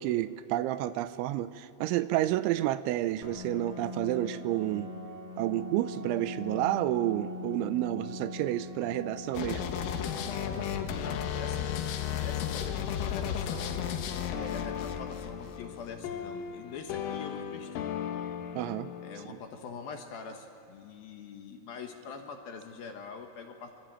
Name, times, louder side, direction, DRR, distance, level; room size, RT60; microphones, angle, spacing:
voice 1, 0.0-4.9 5.4-9.6 18.6-18.9, right 14 dB, 80° right, 13 dB, 3.0 m, -30 dB
Piano, 3.2-18.6, left 4 dB, 30° left, 1.1 m, -45 dB
Organ, 4.4-15.4, right 2 dB, 50° right, 2.8 m, -49 dB
sound 1, 9.3-19.2, left 9 dB, 90° left, 4.1 m, -34 dB
voice 2, 11.0-11.8 12.1-13.8 14.3-17.7 19.0-23.8, left 5 dB, 65° left, 4 dB, 2.6 m, -44 dB
26.0 x 24.5 x 8.9 m, 2.6 s
omnidirectional pair, 5.7 m